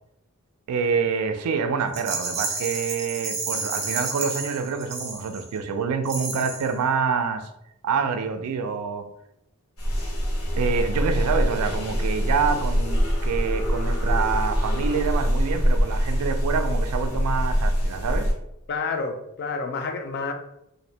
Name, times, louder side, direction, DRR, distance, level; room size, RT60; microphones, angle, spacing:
voice 1, 0.7-7.5 7.8-9.1 10.6-18.3, right 5 dB, 85° right, 8 dB, 0.3 m, -26 dB
Rattle, 1.9-5.6 6.0-6.7, right 3 dB, 30° right, 0.5 m, -31 dB
sound 1, 9.8-18.3, equal, 80° left, 0.7 m, -24 dB
voice 2, 18.7-20.3, left 4 dB, 50° left, 5 dB, 0.3 m, -29 dB
2.5 x 2.1 x 2.7 m, 0.82 s
head